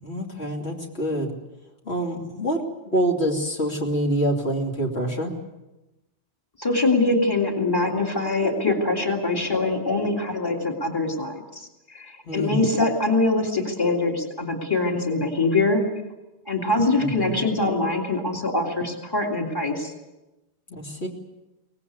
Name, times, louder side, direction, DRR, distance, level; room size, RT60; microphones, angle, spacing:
voice 1, 0.0-1.4 1.8-5.3 12.2-12.7 17.0-17.4 20.7-21.1, right 1 dB, 65° left, 0 dB, 3.1 m, -26 dB
voice 2, 6.6-11.7 11.9-15.8 16.5-19.9, left 2 dB, 20° left, 1 dB, 3.0 m, -23 dB
24.0 x 19.0 x 8.4 m, 1.0 s
omnidirectional pair, 1.2 m